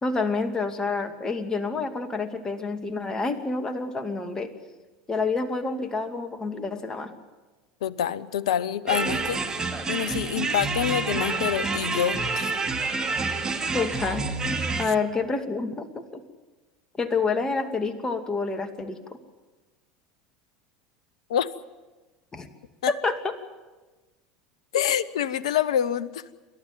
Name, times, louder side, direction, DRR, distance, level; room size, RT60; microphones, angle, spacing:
voice 1, 0.0-4.5 5.1-7.1 13.7-14.3 14.8-16.2 17.0-19.0 22.3-22.5 22.9-23.3, left 4 dB, 20° left, 7 dB, 2.5 m, -28 dB
voice 2, 7.8-9.4 9.9-12.5 14.8-14.9 21.3-21.5 22.8-22.9 24.7-26.2, left 9 dB, 70° left, 18 dB, 0.8 m, -26 dB
sound 1, 8.9-14.9, right 3 dB, 20° right, 2.7 m, -28 dB
28.5 x 12.5 x 9.2 m, 1.2 s
figure-of-eight pair, 80°, 3 cm